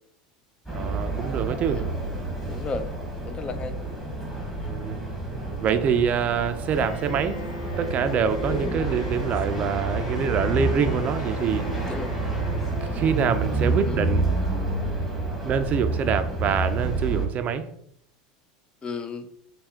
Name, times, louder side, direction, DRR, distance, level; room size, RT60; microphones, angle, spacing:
sound 1, 0.7-17.3, right 3 dB, 5° left, 1.4 m, -29 dB
voice 1, 0.7-1.9 4.7-5.0 5.6-7.4 7.8-11.7 12.9-14.2 15.4-17.7, right 6 dB, 40° right, 9 dB, 0.4 m, -25 dB
voice 2, 2.5-2.9 3.2-3.8 11.8-12.2 13.9-14.0 18.8-19.3, left 4 dB, 25° left, 9 dB, 0.5 m, -33 dB
Bowed string instrument, 6.7-13.6, left 2 dB, 90° left, 0.9 m, -41 dB
4.3 x 2.3 x 3.6 m, 0.69 s
hypercardioid pair, 100°, 4 cm